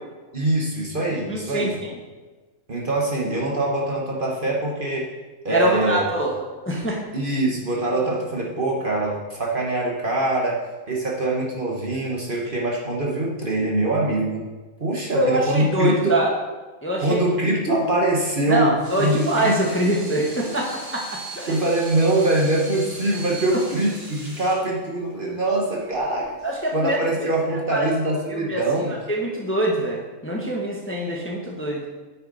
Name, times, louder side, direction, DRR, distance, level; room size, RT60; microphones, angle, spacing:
voice 1, 0.3-1.8 2.7-5.1 5.4-6.0 7.1-14.5 14.8-16.3 17.0-19.6 21.5-26.4 26.7-29.0, right 2 dB, 35° right, -2 dB, 1.4 m, -23 dB
voice 2, 1.3-1.7 5.5-6.3 6.6-7.0 15.1-16.3 16.8-17.2 18.5-21.5 26.4-27.0 27.7-27.9 28.3-28.6 29.1-31.8, right 1 dB, 10° left, -2 dB, 1.2 m, -24 dB
Water tap faucet / Sink (filling or washing), 18.6-26.6, right 2 dB, 80° right, 3.2 m, -39 dB
9.3 x 6.5 x 4.1 m, 1.3 s
omnidirectional pair, 1.6 m